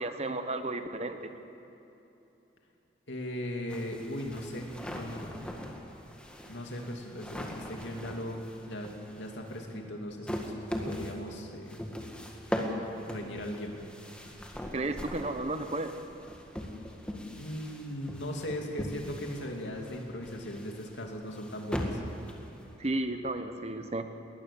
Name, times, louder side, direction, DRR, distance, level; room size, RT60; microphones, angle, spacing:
voice 1, 0.0-1.3 14.7-15.9 22.8-24.1, right 2 dB, 35° right, 8 dB, 1.1 m, -33 dB
voice 2, 3.1-5.3 6.5-10.5 10.8-11.8 13.0-13.8 17.4-22.2, left 1 dB, 85° left, 2 dB, 2.7 m, -38 dB
sound 1, 3.7-22.9, equal, 5° left, 1.8 m, -40 dB
20.0 x 20.0 x 7.0 m, 3.0 s
head